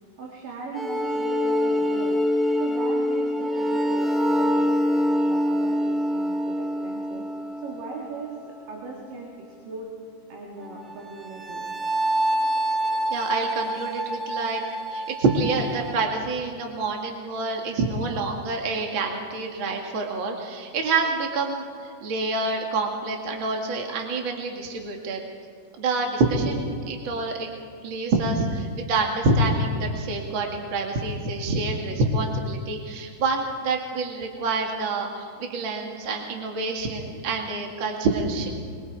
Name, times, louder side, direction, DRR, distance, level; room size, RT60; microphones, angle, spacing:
voice 1, 0.2-2.2 2.6-7.3 7.6-9.3 9.6-9.9 10.3-11.6, right 4 dB, 80° right, -2 dB, 3.7 m, -39 dB
sound 1, 0.7-8.7 10.6-15.9, equal, ahead, 0.4 m, -26 dB
voice 2, 13.1-14.6 14.9-25.2 25.8-27.5 27.8-38.5, right 3 dB, 40° right, 1 dB, 2.6 m, -27 dB
24.0 x 23.0 x 4.8 m, 2.3 s
omnidirectional pair, 3.8 m